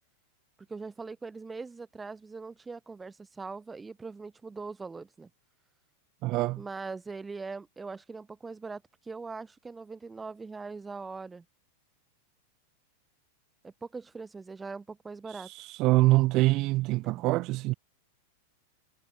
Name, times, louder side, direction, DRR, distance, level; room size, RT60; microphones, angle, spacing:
voice 1, 0.7-5.3 6.6-11.4 13.6-15.5 17.1-17.2, right 4 dB, 15° right, 3.9 m, -41 dB
voice 2, 6.2-6.6 15.3-17.7, right 20 dB, 45° right, 0.5 m, -25 dB
hypercardioid pair, 115°, 0 cm